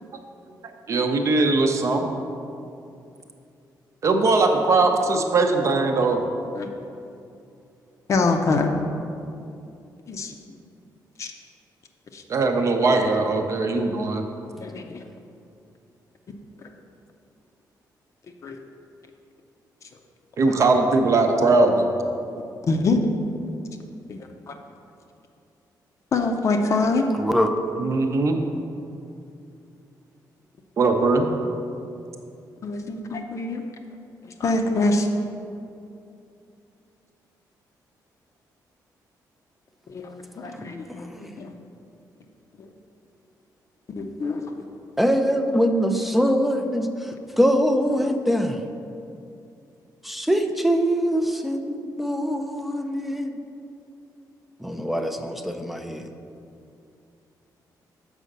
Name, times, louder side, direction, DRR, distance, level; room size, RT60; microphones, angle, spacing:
voice 1, 0.9-2.1 4.0-6.2 12.3-14.2 20.4-21.9 27.8-28.4 30.8-31.3, right 3 dB, 45° right, 4 dB, 0.7 m, -20 dB
voice 2, 8.1-8.7 10.1-10.3 11.2-11.3 12.1-12.2 14.6-15.0 16.6-16.7 18.4-18.6 22.7-23.0 24.1-24.5 26.1-27.1 32.6-33.6 34.4-35.1 39.9-41.1 41.4-41.6 44.0-44.4, left 3 dB, 45° left, 4 dB, 0.6 m, -25 dB
voice 3, 27.1-27.5 40.5-41.3 45.0-48.6 50.0-53.4 54.6-56.1, equal, ahead, 5 dB, 0.4 m, -23 dB
6.4 x 4.9 x 6.6 m, 2.6 s
cardioid pair, 150°, 7 cm